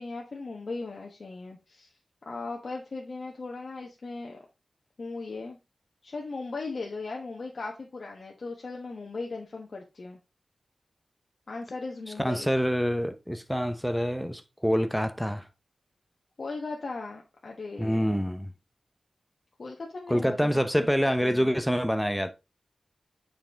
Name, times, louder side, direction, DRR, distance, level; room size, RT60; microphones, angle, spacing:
voice 1, 0.0-1.9 2.2-4.4 5.0-5.6 6.0-10.2 11.5-12.5 16.4-18.1 19.6-20.9 21.2-21.5, left 3 dB, 65° left, 1.1 m, -38 dB
voice 2, 12.2-15.5 17.8-18.5 20.1-22.3, equal, ahead, 0.8 m, -26 dB
6.8 x 5.1 x 3.4 m
cardioid pair, 45°, 0 cm